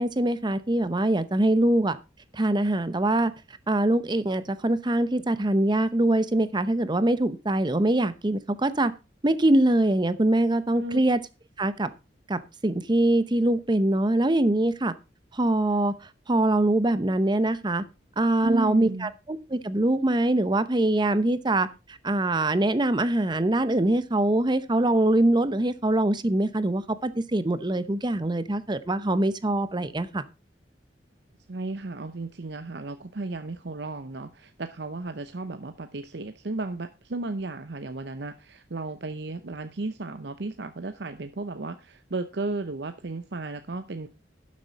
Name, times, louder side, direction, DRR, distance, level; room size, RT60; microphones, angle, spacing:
voice 1, 0.0-2.0 2.3-3.3 3.7-8.9 9.2-11.2 11.6-11.9 12.3-14.9 15.3-15.9 16.3-17.8 18.2-30.2, right 1 dB, 25° right, 14 dB, 0.8 m, -23 dB
voice 2, 18.4-19.1 31.5-44.1, right 3 dB, 65° right, 9 dB, 0.8 m, -34 dB
12.0 x 7.6 x 4.1 m, 0.28 s
head